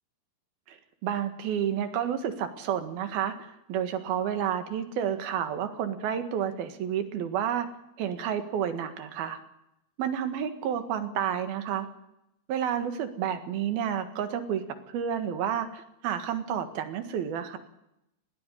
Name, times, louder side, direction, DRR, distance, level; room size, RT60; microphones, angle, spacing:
voice 1, 0.7-7.7 8.0-9.4 10.0-11.9 12.5-14.6 14.9-17.6, right 9 dB, 75° right, 9 dB, 3.5 m, -30 dB
20.5 x 18.0 x 9.9 m, 0.83 s
omnidirectional pair, 4.5 m